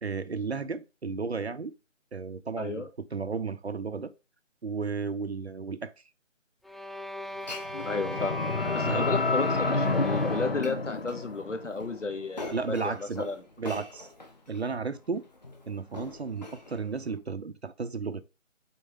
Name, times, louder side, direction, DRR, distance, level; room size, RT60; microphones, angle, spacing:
voice 1, 0.0-1.7 2.1-4.1 4.6-5.9 8.9-9.1 12.5-13.3 13.6-14.1 14.5-15.2 15.7-18.2, right 4 dB, 55° right, 0.7 m, -33 dB
voice 2, 2.6-2.9 7.8-8.4 8.7-13.4, left 3 dB, 70° left, 2.0 m, -33 dB
sound 1, 6.6-10.8, left 1 dB, ahead, 0.3 m, -38 dB
Glass, 7.3-17.2, left 2 dB, 35° left, 1.4 m, -46 dB
sound 2, 7.6-11.8, left 3 dB, 50° left, 0.8 m, -29 dB
8.1 x 4.8 x 3.5 m
figure-of-eight pair, 175°, 38 cm